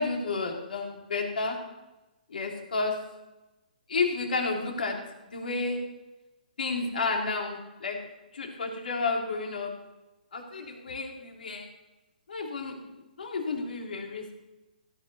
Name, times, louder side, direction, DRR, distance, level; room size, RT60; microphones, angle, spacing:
voice 1, 0.0-1.6 2.3-2.9 3.9-5.0 5.3-5.8 6.6-8.0 8.3-9.7 10.3-11.7 12.3-12.9 13.2-14.3, left 3 dB, 75° left, 1 dB, 3.2 m, -31 dB
15.5 x 5.6 x 7.0 m, 1.0 s
hypercardioid pair, 145°, 5 cm